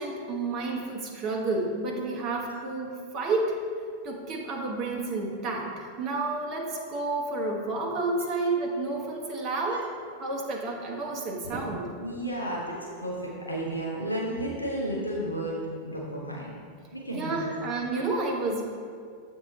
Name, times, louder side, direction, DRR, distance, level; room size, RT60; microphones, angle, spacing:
voice 1, 0.0-3.6 4.0-9.9 10.2-11.9 17.1-18.6, right 3 dB, 35° right, 0 dB, 0.9 m, -30 dB
voice 2, 12.0-16.5 16.9-17.5, right 1 dB, 80° left, -3 dB, 0.8 m, -33 dB
7.3 x 3.7 x 4.0 m, 2.2 s
figure-of-eight pair, 90°, 0 cm